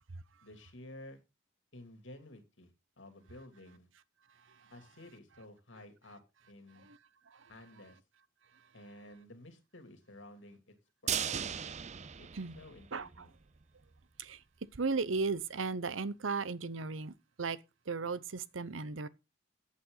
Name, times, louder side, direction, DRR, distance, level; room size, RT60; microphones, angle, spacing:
voice 1, 0.4-1.2 1.7-2.7 3.0-3.9 4.7-6.2 6.5-6.9 7.5-8.0 8.7-10.7 11.0-11.5 12.2-12.3 12.6-13.3, left 1 dB, 70° left, 2.8 m, -53 dB
voice 2, 4.4-4.7 6.8-7.0 7.3-7.5 8.5-8.7 12.3-12.6 12.9-13.3 14.2-14.4 14.7-17.6 17.9-19.1, right 4 dB, 85° right, 0.8 m, -36 dB
sound 1, 11.1-13.2 13.5-13.6 14.0-14.1, right 8 dB, 35° right, 0.6 m, -37 dB
14.5 x 8.6 x 3.9 m
head